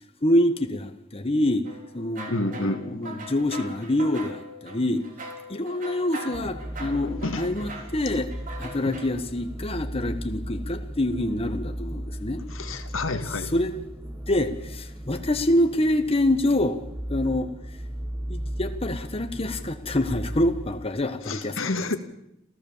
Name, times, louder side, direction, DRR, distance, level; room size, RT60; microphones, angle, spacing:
voice 1, 0.2-1.7 1.9-5.0 5.5-8.3 8.6-12.4 13.4-13.7 14.3-16.8 17.1-17.5 18.3-21.9, left 1 dB, 30° left, 7 dB, 1.3 m, -26 dB
sound 1, 1.6-9.1, right 1 dB, 45° right, 4.1 m, -41 dB
voice 2, 2.3-3.0 6.8-7.5 12.5-13.5 21.3-22.0, left 2 dB, 85° left, 7 dB, 1.9 m, -30 dB
sound 2, 6.3-20.9, equal, 10° right, 1.3 m, -36 dB
28.5 x 15.0 x 7.3 m, 0.82 s
head